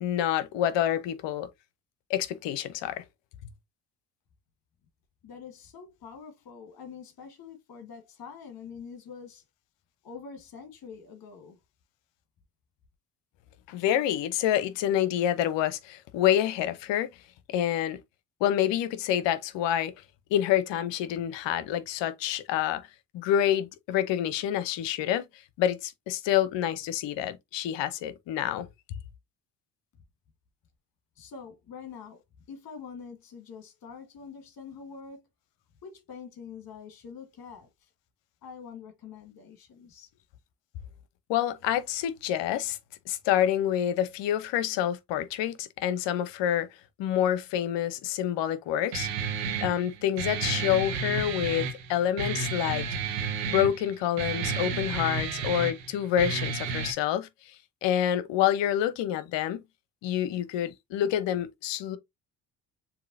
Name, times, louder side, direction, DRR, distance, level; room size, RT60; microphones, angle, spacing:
voice 1, 0.0-1.5 2.1-3.0 13.7-17.1 17.5-18.0 18.4-19.9 20.3-22.8 23.1-25.2 25.6-28.7 41.3-42.8 43.1-46.7 47.0-49.1 49.6-52.9 53.5-57.3 57.8-59.6 60.0-62.0, left 11 dB, 65° left, 0.9 m, -27 dB
voice 2, 5.2-9.4 10.0-11.6 31.2-32.2 32.5-35.3 35.8-37.9 38.4-40.1, left 6 dB, 45° left, 1.6 m, -45 dB
Guitar, 48.9-56.9, right 5 dB, 85° right, 1.1 m, -32 dB
6.9 x 2.9 x 2.7 m
hypercardioid pair, 55°, 48 cm